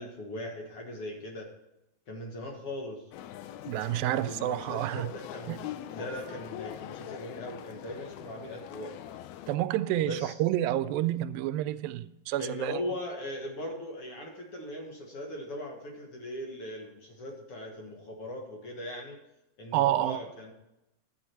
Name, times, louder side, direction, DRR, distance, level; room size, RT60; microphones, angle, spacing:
voice 1, 0.0-1.5 2.1-3.0 4.1-9.0 10.1-10.3 12.4-19.2 19.6-20.5, left 1 dB, 50° left, 2.0 m, -39 dB
sound 1, 3.1-9.6, left 11 dB, 85° left, 1.6 m, -43 dB
voice 2, 3.7-5.1 5.5-5.6 9.5-12.8 19.7-20.2, right 13 dB, 90° right, 2.3 m, -29 dB
11.5 x 8.4 x 4.4 m
omnidirectional pair, 4.0 m